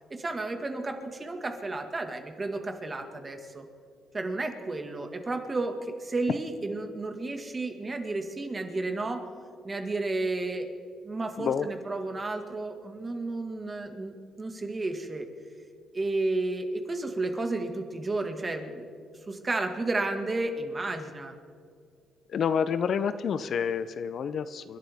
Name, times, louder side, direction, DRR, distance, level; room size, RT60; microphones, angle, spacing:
voice 1, 0.1-3.6 4.1-9.2 9.6-10.7 11.0-15.3 15.9-18.9 19.3-21.3, right 2 dB, 25° right, 5 dB, 1.8 m, -32 dB
voice 2, 22.3-24.8, left 7 dB, 60° left, 13 dB, 0.6 m, -28 dB
29.0 x 11.5 x 3.6 m, 2.2 s
cardioid pair, 90°, 0 cm